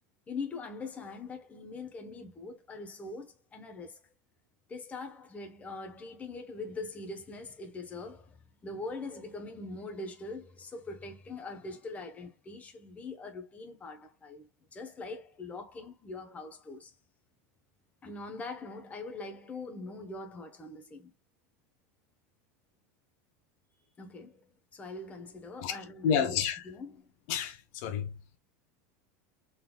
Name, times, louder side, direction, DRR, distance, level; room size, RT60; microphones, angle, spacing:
voice 1, 0.3-4.0 4.7-16.9 18.0-21.1 24.0-26.4 26.6-27.1, left 3 dB, 15° left, 1.0 m, -42 dB
voice 2, 26.0-26.7 27.3-28.1, left 7 dB, 60° left, 1.0 m, -30 dB
5.4 x 4.0 x 2.3 m
supercardioid pair, 140°, 9 cm